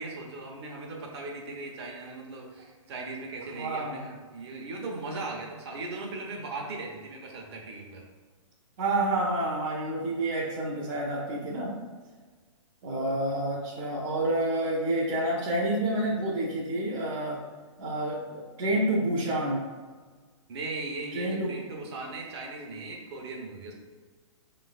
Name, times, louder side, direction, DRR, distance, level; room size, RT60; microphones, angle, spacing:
voice 1, 0.0-8.0 20.5-23.7, right 3 dB, 50° right, 0 dB, 1.0 m, -38 dB
voice 2, 3.5-4.0 8.8-11.7 12.8-17.4 17.8-19.6 21.1-21.5, right 1 dB, 35° right, -6 dB, 0.8 m, -28 dB
5.7 x 3.2 x 2.4 m, 1.5 s
hypercardioid pair, 150°, 17 cm